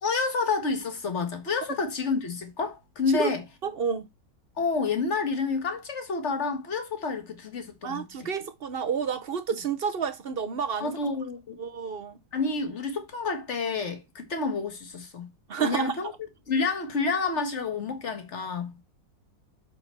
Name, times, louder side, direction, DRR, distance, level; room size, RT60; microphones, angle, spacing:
voice 1, 0.0-3.4 4.6-8.0 10.8-11.6 12.3-15.3 15.6-16.1 16.5-18.8, left 4 dB, 40° left, 1.9 m, -29 dB
voice 2, 3.6-4.1 7.8-11.0 11.6-12.2 15.5-15.9, right 6 dB, 50° right, 0.7 m, -30 dB
6.3 x 5.9 x 4.4 m
omnidirectional pair, 1.9 m